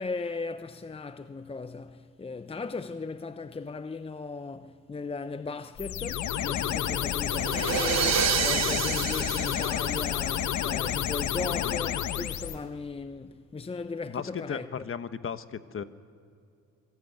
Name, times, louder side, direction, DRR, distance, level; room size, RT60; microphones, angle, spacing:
voice 1, 0.0-14.9, left 4 dB, 20° left, 0.8 m, -37 dB
sound 1, 5.8-12.6, left 10 dB, 75° left, 1.3 m, -30 dB
sound 2, 7.3-10.6, right 9 dB, 60° right, 1.3 m, -29 dB
voice 2, 14.1-15.8, left 7 dB, 45° left, 1.2 m, -36 dB
25.5 x 17.5 x 9.4 m
cardioid pair, 90°, 30 cm